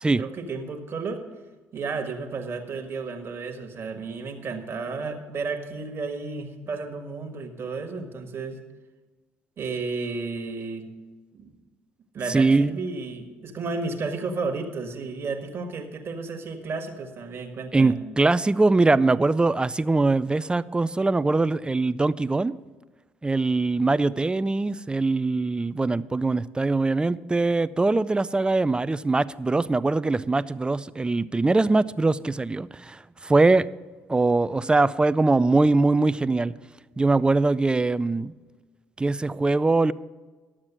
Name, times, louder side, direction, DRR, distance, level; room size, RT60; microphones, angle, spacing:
voice 1, 0.0-1.2 1.7-8.6 9.6-10.9 11.3-11.5 12.1-18.0, right 4 dB, 45° right, 4 dB, 1.6 m, -32 dB
voice 2, 12.3-12.8 17.7-22.5 23.2-33.7 34.1-36.5 37.0-38.3 39.0-39.9, right 3 dB, 15° right, 17 dB, 0.4 m, -22 dB
11.5 x 7.3 x 6.1 m, 1.3 s
hypercardioid pair, 60°, 6 cm